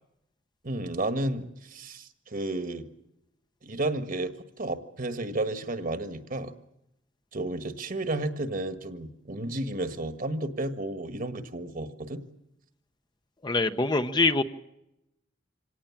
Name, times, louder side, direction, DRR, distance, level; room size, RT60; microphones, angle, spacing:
voice 1, 0.6-2.9 3.6-6.5 7.3-12.2, right 2 dB, 45° right, 9 dB, 1.6 m, -32 dB
voice 2, 13.4-14.4, left 3 dB, 25° left, 9 dB, 0.8 m, -24 dB
25.5 x 18.0 x 7.3 m, 0.86 s
head